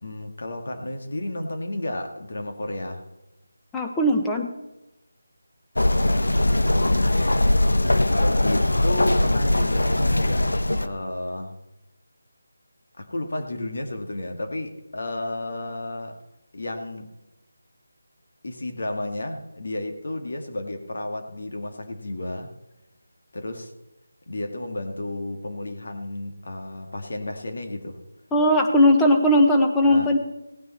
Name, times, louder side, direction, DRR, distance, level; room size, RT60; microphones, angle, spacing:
voice 1, 0.0-3.0 6.7-7.1 8.1-10.5 10.8-11.6 13.0-16.2 16.5-17.1 18.4-22.5 23.3-23.7 24.3-28.0 29.8-30.1, left 1 dB, 65° left, 4 dB, 2.1 m, -32 dB
voice 2, 3.7-4.5 28.3-30.2, left 1 dB, 5° left, 1 dB, 1.1 m, -18 dB
sound 1, 5.8-10.9, left 1 dB, 90° left, 1.0 m, -20 dB
17.5 x 9.5 x 4.3 m, 0.96 s
figure-of-eight pair, 170°, 0 cm